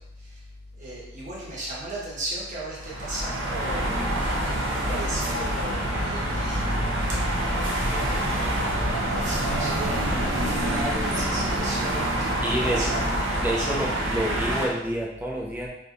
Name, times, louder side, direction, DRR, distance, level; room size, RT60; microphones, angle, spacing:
voice 1, 0.8-6.9 7.7-13.0 13.6-13.8, right 1 dB, 40° right, -7 dB, 1.0 m, -36 dB
sound 1, 2.8-14.7, right 1 dB, 75° right, 0.7 m, -27 dB
Piano, 4.3-11.0, left 6 dB, 80° left, 0.4 m, -45 dB
sound 2, 6.5-13.3, equal, 40° left, 1.0 m, -35 dB
voice 2, 12.4-12.9 13.4-15.7, right 1 dB, 10° right, -3 dB, 0.4 m, -28 dB
3.3 x 2.7 x 2.4 m, 0.85 s
head